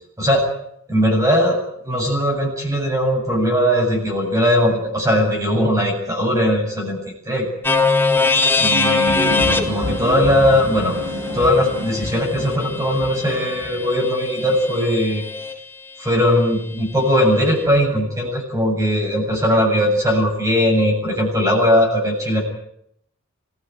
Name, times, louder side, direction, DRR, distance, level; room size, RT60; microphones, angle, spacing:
voice 1, 0.9-1.6 1.9-7.0 7.2-7.5 8.6-10.9 11.3-15.2 16.0-22.4, equal, 15° right, -1 dB, 7.5 m, -19 dB
sound 1, 7.6-15.5, left 3 dB, 10° left, 2.1 m, -22 dB
sound 2, 9.0-13.8, equal, 80° right, 7.9 m, -30 dB
26.0 x 16.5 x 9.3 m, 0.73 s
head